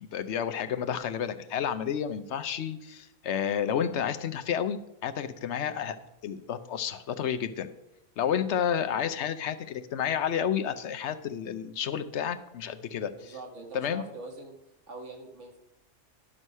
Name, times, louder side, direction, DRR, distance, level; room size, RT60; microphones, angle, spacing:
voice 1, 0.0-6.0 6.2-7.7 8.2-13.3 13.7-14.0, left 8 dB, 70° left, 11 dB, 1.0 m, -31 dB
voice 2, 13.1-14.5 14.9-15.6, right 2 dB, 75° right, 2 dB, 2.0 m, -43 dB
11.0 x 6.2 x 5.4 m, 0.87 s
omnidirectional pair, 1.2 m